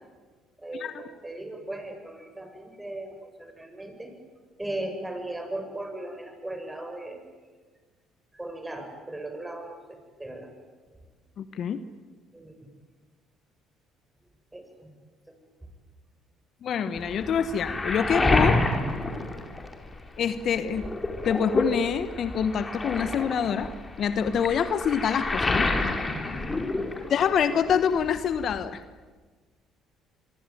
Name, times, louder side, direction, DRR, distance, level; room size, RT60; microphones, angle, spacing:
voice 1, 0.6-4.1 4.6-7.2 8.3-10.5 12.3-12.5 14.5-14.9 26.1-26.3, right 1 dB, 15° right, 5 dB, 7.9 m, -37 dB
voice 2, 11.4-11.8 16.6-18.6 20.2-20.9 21.2-23.7 24.0-25.7 27.1-28.8, left 7 dB, 55° left, 12 dB, 1.3 m, -26 dB
Waves surf, 16.9-20.2 20.5-27.4 27.7-28.6, left 2 dB, 25° left, 4.6 m, -28 dB
26.0 x 23.5 x 9.4 m, 1.4 s
hypercardioid pair, 60°, 0 cm